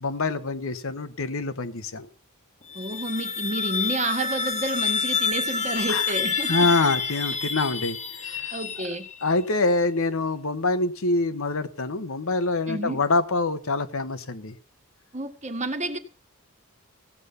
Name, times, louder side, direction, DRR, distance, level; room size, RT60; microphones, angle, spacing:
voice 1, 0.0-2.1 5.9-6.0 6.5-8.0 8.2-8.5 9.2-14.5, left 3 dB, 65° left, 11 dB, 1.1 m, -25 dB
sound 1, 2.6-9.3, left 5 dB, 35° left, 1.3 m, -28 dB
voice 2, 2.7-6.9 8.5-9.1 12.7-13.0 15.1-16.0, right 2 dB, 35° right, 6 dB, 1.5 m, -30 dB
16.0 x 8.3 x 6.7 m, 0.39 s
head